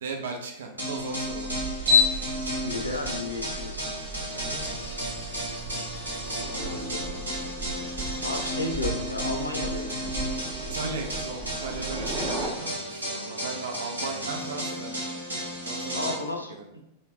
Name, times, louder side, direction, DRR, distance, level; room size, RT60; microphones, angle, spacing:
voice 1, 0.0-1.9 4.3-4.6 10.7-15.0 15.6-16.2 16.5-16.7, right 4 dB, 65° right, 2 dB, 0.5 m, -36 dB
sound 1, 0.8-16.1, equal, 80° right, 0.9 m, -33 dB
sound 2, 1.1-12.5, left 3 dB, 20° right, 0.7 m, -32 dB
voice 2, 2.6-3.9 6.5-7.2 8.2-10.1 15.9-16.6, left 2 dB, 85° left, 1 dB, 0.4 m, -33 dB
2.7 x 2.2 x 3.1 m, 0.83 s
figure-of-eight pair, 90°, 0 cm